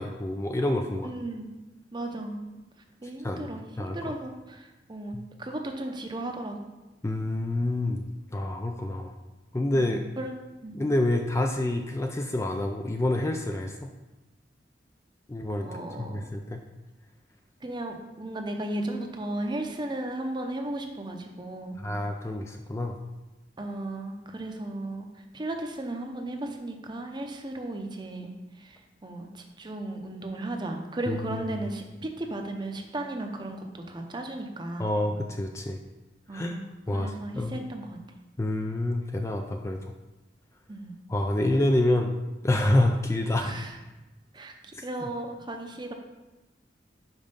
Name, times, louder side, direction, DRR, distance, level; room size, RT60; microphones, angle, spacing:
voice 1, 0.0-1.1 3.2-3.5 3.8-4.1 5.1-5.2 7.0-8.1 8.3-9.1 9.5-10.0 10.7-13.9 15.3-15.7 16.0-16.6 21.8-23.0 31.1-31.4 34.8-35.8 36.3-36.6 36.9-37.6 38.4-39.9 41.1-42.1 42.4-43.5 44.7-45.1, left 1 dB, 15° left, 4 dB, 0.3 m, -27 dB
voice 2, 1.0-1.5 1.9-2.4 3.0-6.6 9.7-10.3 10.6-10.8 15.6-16.3 17.6-21.8 23.6-25.1 25.3-28.3 29.0-34.9 36.3-36.6 36.9-38.0 40.7-40.9 43.4-43.7 44.3-45.9, right 1 dB, 25° right, 4 dB, 0.7 m, -35 dB
5.3 x 4.9 x 5.3 m, 1.1 s
head